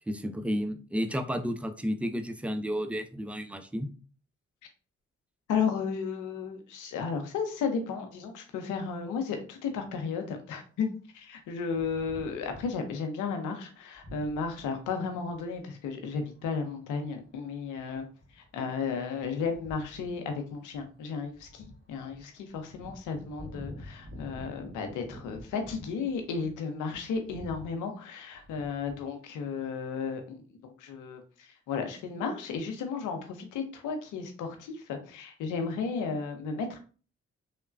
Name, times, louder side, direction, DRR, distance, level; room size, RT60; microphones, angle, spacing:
voice 1, 0.1-3.9, equal, 5° right, 8 dB, 0.4 m, -32 dB
voice 2, 5.5-10.9 11.1-18.0 18.3-36.8, left 5 dB, 85° left, 5 dB, 0.6 m, -34 dB
sound 1, 11.7-13.0 13.9-15.6 16.3-16.5 16.9-26.6 26.9-27.8 28.3-29.0, left 1 dB, 45° right, 1.2 m, -49 dB
3.1 x 2.1 x 2.4 m, 0.37 s
supercardioid pair, 45°, 30 cm